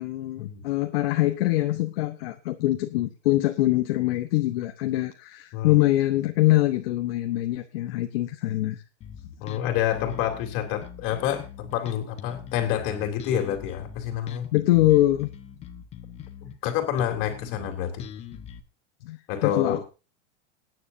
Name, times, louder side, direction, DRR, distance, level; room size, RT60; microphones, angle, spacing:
voice 1, 0.0-8.8 14.5-15.3 19.0-19.8, left 16 dB, 55° left, 6 dB, 1.1 m, -24 dB
Bass guitar, 9.0-18.6, left 9 dB, 20° left, 0.9 m, -42 dB
voice 2, 9.4-14.5 16.4-18.1 19.3-19.8, left 10 dB, 35° left, 5 dB, 3.3 m, -28 dB
20.0 x 10.0 x 2.7 m, 0.31 s
supercardioid pair, 165°, 35 cm